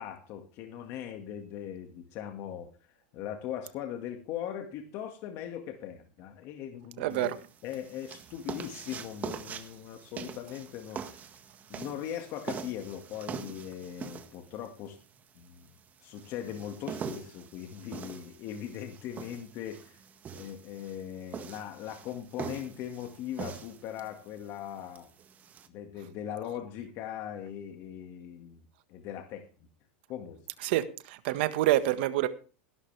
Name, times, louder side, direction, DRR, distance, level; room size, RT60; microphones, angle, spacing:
voice 1, 0.0-2.7 3.1-7.3 7.6-11.3 11.7-15.0 15.4-15.7 16.0-20.0 20.3-25.1 25.7-28.6 28.9-29.4 30.1-30.4, left 10 dB, 45° left, 1.9 m, -40 dB
voice 2, 7.0-7.3 30.6-32.3, right 14 dB, 65° right, 1.6 m, -27 dB
sound 1, 7.1-25.7, right 7 dB, 25° right, 1.7 m, -43 dB
18.0 x 11.5 x 3.4 m
supercardioid pair, 130°, 6 cm